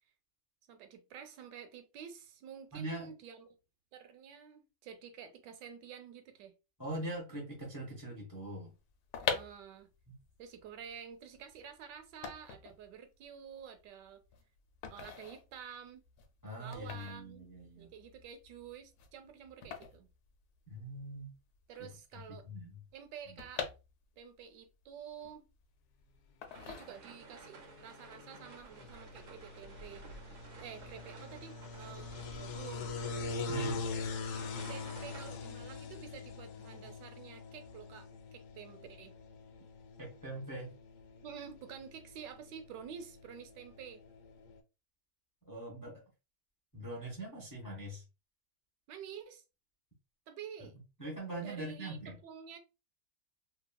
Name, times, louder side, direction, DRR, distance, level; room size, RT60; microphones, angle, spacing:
voice 1, 0.7-3.5 3.9-6.5 9.2-9.9 10.4-14.2 14.9-16.0 16.6-17.5 17.8-20.1 21.7-22.5 22.9-23.7 24.2-25.5 26.6-30.1 30.6-32.1 32.4-32.9 33.4-33.8 34.7-39.1 41.2-44.0 48.9-49.4 50.3-50.7 51.4-52.6, right 8 dB, 85° right, 1.2 m, -49 dB
voice 2, 2.7-3.1 6.8-8.7 16.4-17.9 20.7-21.3 21.8-21.9 22.1-22.8 33.5-33.8 40.0-40.7 45.4-46.0 46.7-48.0 50.6-50.7 51.0-52.2, right 1 dB, 30° left, 0.3 m, -42 dB
sound 1, 8.9-21.0 21.3-21.4 21.5-24.4 24.8-25.9 26.4-27.4 27.8-28.0, left 7 dB, 70° left, 1.0 m, -43 dB
sound 2, 26.5-44.6, left 4 dB, 90° left, 1.3 m, -44 dB
sound 3, 26.5-35.3, right 5 dB, 65° right, 0.8 m, -55 dB
2.9 x 2.4 x 2.2 m
omnidirectional pair, 1.8 m